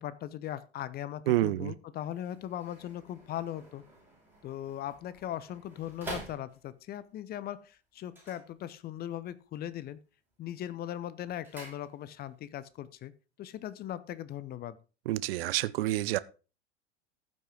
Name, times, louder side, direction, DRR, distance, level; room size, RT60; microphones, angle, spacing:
voice 1, 0.0-3.8 4.4-10.0 10.4-13.1 13.4-14.8, left 11 dB, 30° left, 0.7 m, -39 dB
voice 2, 1.3-1.7 15.1-16.2, right 16 dB, 55° right, 0.6 m, -28 dB
sound 1, 2.0-7.0 8.0-9.2 9.4-10.0 10.3-12.4 12.7-12.8, right 2 dB, 5° right, 5.2 m, -48 dB
14.5 x 6.0 x 3.8 m
figure-of-eight pair, 80°, 34 cm